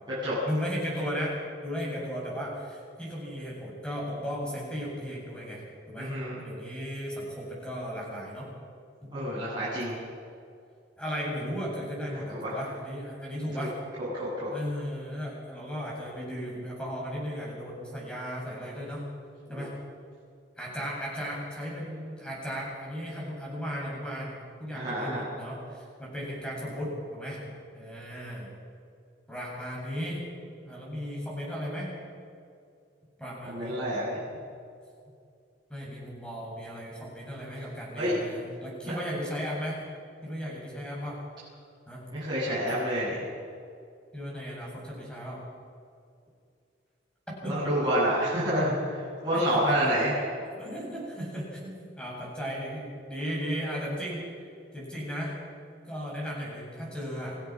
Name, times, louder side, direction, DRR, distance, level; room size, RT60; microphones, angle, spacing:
voice 1, 0.4-1.4 1.6-6.1 6.4-8.5 11.0-13.7 14.5-19.0 19.5-19.7 20.6-27.4 27.7-28.5 29.3-30.2 30.7-31.9 33.2-33.8 35.7-39.8 40.2-41.2 41.9-42.0 44.1-45.4 47.3-47.6 49.3-49.9 50.5-54.3 54.7-55.3 55.9-57.5, equal, 5° left, -4 dB, 7.8 m, -36 dB
voice 2, 6.0-6.3 9.1-9.9 12.1-12.6 14.0-14.5 19.5-19.6 24.7-25.2 33.5-34.2 38.0-38.2 38.8-38.9 42.1-43.2 47.5-50.2, equal, 25° right, -10 dB, 7.9 m, -28 dB
28.0 x 16.5 x 6.2 m, 2.3 s
head